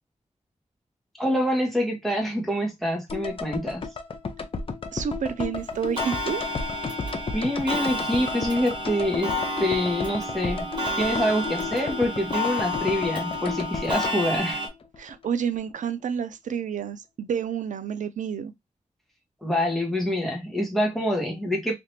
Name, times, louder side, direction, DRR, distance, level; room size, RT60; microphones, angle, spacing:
voice 1, 1.2-3.8 7.3-10.7 11.0-14.6 19.4-21.8, equal, ahead, 1.2 m, -26 dB
sound 1, 3.1-15.3 15.5-15.6, left 4 dB, 45° left, 0.6 m, -34 dB
voice 2, 4.9-6.4 15.0-18.5, right 7 dB, 90° right, 0.4 m, -29 dB
Clock, 6.0-14.7, left 1 dB, 40° right, 1.4 m, -31 dB
3.4 x 2.9 x 2.6 m
wide cardioid pair, 135°, 12 cm